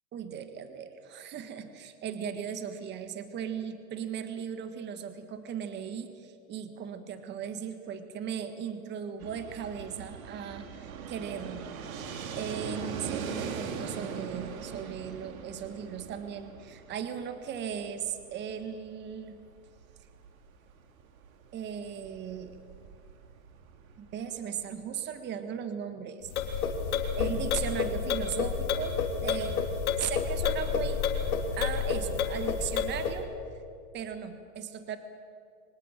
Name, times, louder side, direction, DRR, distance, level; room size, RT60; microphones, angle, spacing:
voice 1, 0.1-11.7 12.4-19.4 21.5-22.6 24.0-26.7 27.2-31.1 31.5-33.3 33.9-35.0, right 8 dB, 25° right, 9 dB, 1.6 m, -37 dB
Fixed-wing aircraft airplane, 9.2-24.9, right 6 dB, 75° right, 2.9 m, -41 dB
sound 1, 26.3-33.2, left 6 dB, 90° left, 3.4 m, -30 dB
24.5 x 19.0 x 9.0 m, 2.3 s
supercardioid pair, 150°, 42 cm